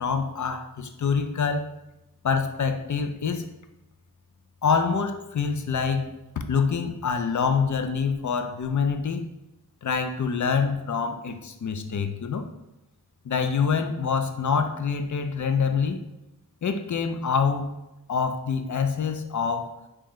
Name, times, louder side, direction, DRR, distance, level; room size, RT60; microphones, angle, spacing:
voice 1, 0.0-1.7 2.2-3.5 4.6-6.1 6.5-9.2 9.8-12.4 13.3-16.0 16.6-17.7 18.1-19.7, left 5 dB, 50° left, 7 dB, 0.5 m, -26 dB
3.1 x 2.9 x 3.6 m, 0.93 s
wide cardioid pair, 45°, 39 cm